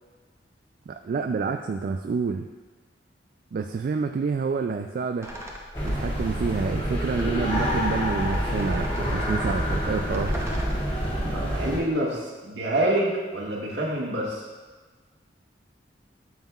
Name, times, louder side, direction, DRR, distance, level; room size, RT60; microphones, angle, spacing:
voice 1, 0.9-2.5 3.5-5.3 5.8-10.4, right 5 dB, 55° right, 5 dB, 0.3 m, -28 dB
sound 1, 5.2-6.2 6.5-6.6 7.2-11.7, equal, 15° right, 0.9 m, -42 dB
sound 2, 5.7-11.8, equal, 30° left, 2.4 m, -27 dB
voice 2, 11.3-14.4, right 1 dB, 70° right, -3 dB, 1.6 m, -27 dB
9.2 x 7.2 x 2.4 m, 1.4 s
head